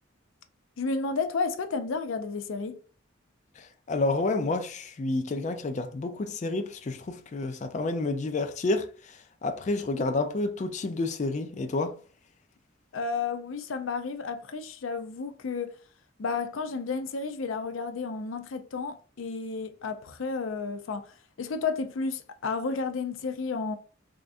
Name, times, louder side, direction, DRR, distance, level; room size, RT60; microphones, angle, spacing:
voice 1, 0.8-2.8 12.9-15.7 16.2-23.8, left 4 dB, 90° left, 0.5 m, -32 dB
voice 2, 3.6-12.0, left 2 dB, 35° left, 0.4 m, -30 dB
3.6 x 3.3 x 2.6 m
head